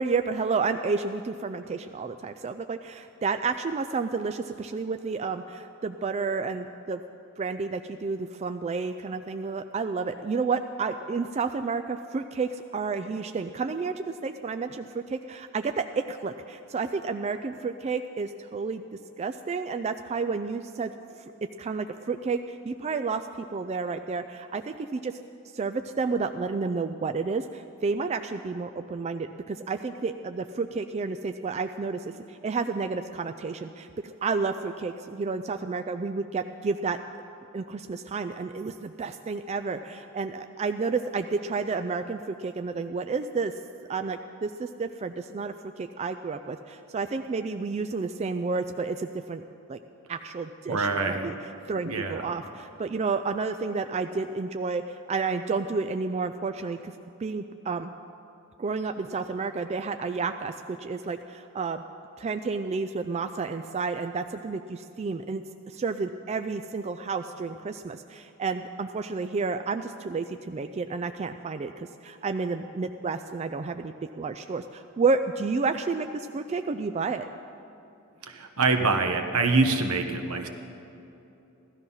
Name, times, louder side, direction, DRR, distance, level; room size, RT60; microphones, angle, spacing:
voice 1, 0.0-7.0 7.4-18.8 19.2-20.9 21.6-25.1 25.5-37.0 37.5-43.5 43.9-49.4 49.7-49.8 50.1-51.3 51.6-56.9 57.2-57.9 58.6-61.8 62.2-77.3, right 4 dB, 30° right, 8 dB, 0.3 m, -31 dB
voice 2, 50.7-51.3 51.8-52.3 78.3-80.5, right 3 dB, 75° right, 5 dB, 1.2 m, -25 dB
16.5 x 13.0 x 5.6 m, 2.9 s
head